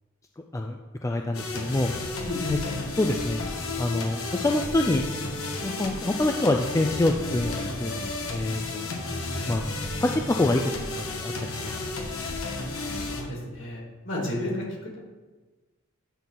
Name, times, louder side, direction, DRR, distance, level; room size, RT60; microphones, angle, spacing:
voice 1, 0.4-1.9 2.5-2.6 3.0-3.4 3.8-5.1 5.6-7.9 8.3-8.9 9.5-9.7 10.0-10.8 11.2-11.8, left 2 dB, 15° left, 3 dB, 0.3 m, -26 dB
sound 1, 1.3-13.2, left 2 dB, 90° left, 1.3 m, -32 dB
voice 2, 2.2-2.6 13.1-14.6, left 1 dB, 60° left, -3 dB, 2.7 m, -32 dB
9.1 x 3.8 x 5.8 m, 1.3 s
head